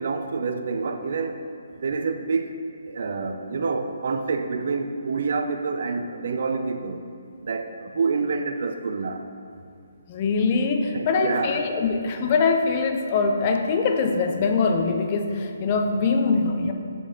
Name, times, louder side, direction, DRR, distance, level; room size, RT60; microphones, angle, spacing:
voice 1, 0.0-1.4 1.8-2.6 2.9-7.0 7.4-9.2 10.9-11.7, right 4 dB, 60° right, 7 dB, 0.5 m, -27 dB
voice 2, 10.1-16.7, left 4 dB, 30° left, 5 dB, 0.5 m, -23 dB
6.4 x 5.3 x 3.8 m, 2.5 s
hypercardioid pair, 160°, 0 cm